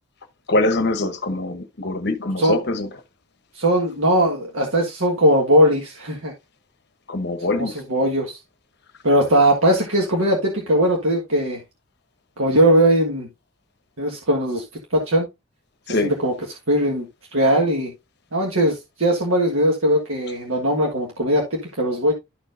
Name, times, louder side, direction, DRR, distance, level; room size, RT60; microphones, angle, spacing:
voice 1, 0.5-2.9 7.1-7.7 15.9-16.1, left 2 dB, 50° left, 0.9 m, -23 dB
voice 2, 3.5-6.3 7.5-8.4 9.0-11.6 12.4-13.3 14.0-14.6 14.9-15.3 15.9-17.0 17.3-17.9 18.3-22.1, right 1 dB, 70° right, 1.6 m, -19 dB
12.5 x 4.5 x 2.5 m
head